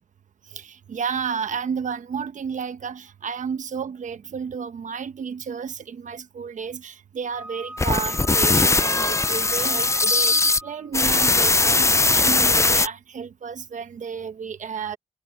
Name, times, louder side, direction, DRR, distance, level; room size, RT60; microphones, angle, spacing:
voice 1, 0.5-10.3 10.6-15.0, right 6 dB, 75° right, 1.2 m, -32 dB
Wind instrument woodwind instrument, 7.3-10.9, right 1 dB, 10° right, 2.9 m, -39 dB
sound 1, 7.8-10.6 10.9-12.9, left 3 dB, 20° left, 0.5 m, -19 dB
cardioid pair, 45°, 13 cm